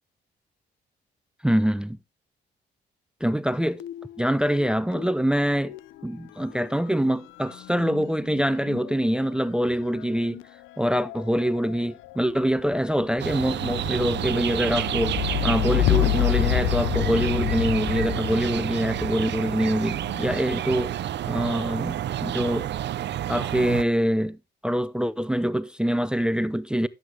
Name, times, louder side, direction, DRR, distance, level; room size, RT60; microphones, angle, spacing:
voice 1, 1.4-2.0 3.2-3.8 4.2-5.7 6.0-10.4 10.8-21.0 21.3-22.7 23.3-24.4 24.6-26.9, equal, 5° right, 0.5 m, -25 dB
sound 1, 3.8-5.1 5.4-20.4 21.2-21.8, left 17 dB, 80° left, 0.5 m, -30 dB
sound 2, 13.2-23.8, right 12 dB, 60° right, 0.6 m, -29 dB
12.0 x 7.9 x 3.3 m
cardioid pair, 90°, 20 cm